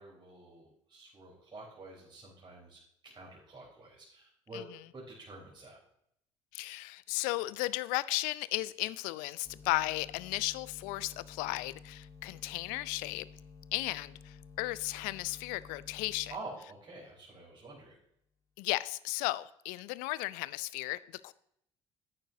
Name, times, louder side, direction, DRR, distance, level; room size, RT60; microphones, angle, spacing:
voice 1, 0.0-4.6 4.9-5.8 16.3-18.0, right 2 dB, 30° right, 4.0 m, -48 dB
voice 2, 6.5-13.3 13.7-16.3 18.6-21.3, left 19 dB, 70° left, 0.5 m, -35 dB
sound 1, 9.4-16.5, left 5 dB, 20° left, 1.6 m, -53 dB
12.0 x 9.1 x 2.7 m
hypercardioid pair, 55°, 15 cm